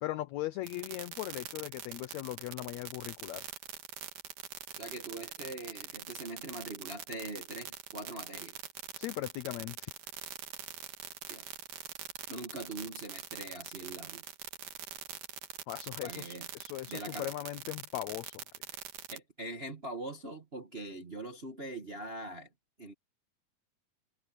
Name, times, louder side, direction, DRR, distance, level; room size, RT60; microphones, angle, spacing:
voice 1, 0.0-3.5 9.0-9.9 15.7-18.4, left 15 dB, 90° left, 1.5 m, -39 dB
sound 1, 0.7-19.2, right 11 dB, 70° right, 3.0 m, -43 dB
voice 2, 4.8-8.6 11.3-11.5 12.3-14.2 16.0-16.5 16.9-17.3 19.1-22.5 22.8-22.9, right 2 dB, 40° right, 0.8 m, -42 dB
omnidirectional pair, 3.8 m